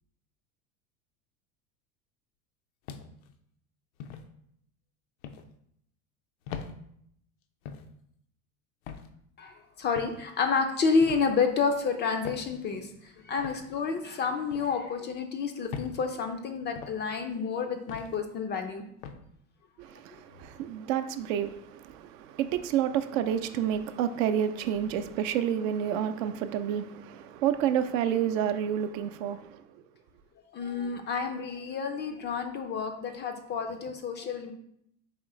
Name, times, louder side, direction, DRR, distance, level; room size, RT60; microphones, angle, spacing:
sound 1, 2.9-3.3 4.0-4.3 5.2-5.5 6.5-6.7 7.6-7.9 8.9-9.1 9.9-10.2 11.0-11.3 12.2-12.5 13.4-13.6 14.5-14.7 15.7-16.0 16.7-17.0 17.9-18.1 19.0-19.2, left 6 dB, 70° left, 0.6 m, -40 dB
voice 1, 9.4-18.8 30.5-34.5, left 5 dB, 25° left, 0.4 m, -30 dB
voice 2, 19.8-29.6, right 9 dB, 65° right, 0.5 m, -29 dB
4.2 x 3.0 x 3.7 m
hypercardioid pair, 95°, 43 cm